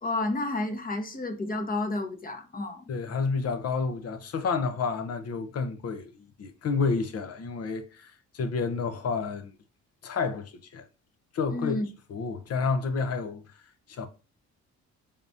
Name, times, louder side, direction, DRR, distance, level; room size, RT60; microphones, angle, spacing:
voice 1, 0.0-2.8 11.5-11.8, left 2 dB, 30° left, 1.0 m, -31 dB
voice 2, 2.9-9.5 10.0-10.9 11.3-11.8 12.1-13.4 13.9-14.1, left 4 dB, 55° left, 0.8 m, -30 dB
3.9 x 3.5 x 2.6 m
cardioid pair, 90°, 30 cm